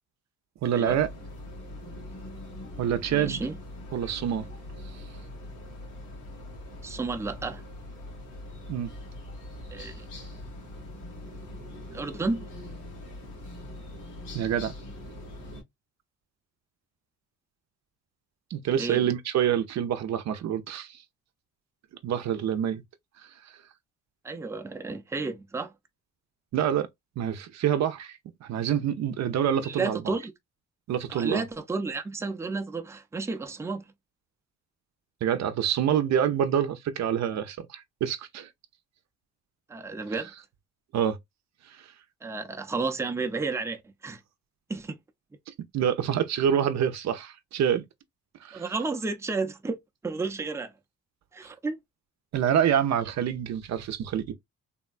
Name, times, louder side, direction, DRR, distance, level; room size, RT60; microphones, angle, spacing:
voice 1, 0.6-1.1 2.8-3.4 3.9-4.5 4.9-5.0 8.7-8.9 14.3-14.7 18.5-21.0 22.0-22.8 26.5-26.9 27.2-30.0 30.9-31.4 35.2-38.5 40.9-41.2 45.7-47.8 48.4-48.6 52.3-54.3, right 9 dB, 65° right, 0.6 m, -26 dB
sound 1, 0.8-15.6, left 1 dB, 85° left, 1.8 m, -42 dB
voice 2, 3.1-3.6 6.8-7.6 9.7-10.0 11.9-12.5 18.8-19.0 24.2-25.7 29.6-30.3 31.1-33.8 39.7-40.3 42.2-44.2 44.7-45.0 48.5-50.7 51.3-51.8, right 3 dB, 10° right, 0.5 m, -32 dB
3.5 x 2.1 x 2.4 m
cardioid pair, 90°, 30 cm